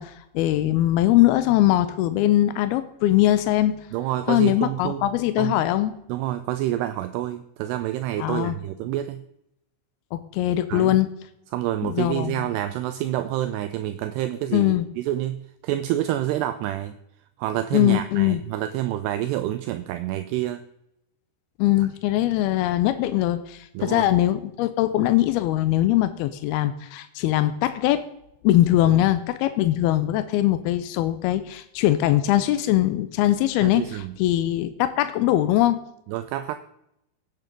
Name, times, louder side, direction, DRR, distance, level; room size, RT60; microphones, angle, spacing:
voice 1, 0.0-3.8 4.3-5.9 8.2-8.6 10.1-11.1 11.8-12.5 14.5-14.9 17.7-18.4 21.6-28.0 28.4-35.8, left 14 dB, 80° left, 11 dB, 2.3 m, -21 dB
voice 2, 3.9-5.0 5.4-5.6 6.1-9.2 10.7-11.0 11.5-16.9 17.4-20.6 21.8-21.9 23.7-24.1 28.8-29.0 33.6-34.1 36.1-36.6, right 13 dB, 80° right, 10 dB, 2.6 m, -28 dB
17.0 x 9.3 x 5.2 m, 0.81 s
omnidirectional pair, 5.1 m